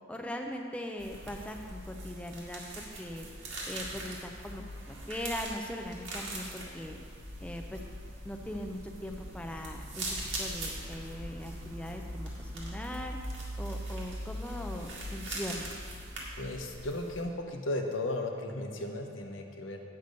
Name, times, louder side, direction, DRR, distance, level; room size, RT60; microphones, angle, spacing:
voice 1, 0.1-3.3 3.6-7.0 7.4-7.8 8.2-13.2 13.6-15.7, left 1 dB, 5° left, 2 dB, 0.4 m, -40 dB
sound 1, 1.0-17.2, right 1 dB, 85° right, 1.9 m, -41 dB
voice 2, 16.4-19.8, left 2 dB, 85° left, 3 dB, 0.9 m, -35 dB
8.2 x 6.7 x 5.2 m, 2.2 s
head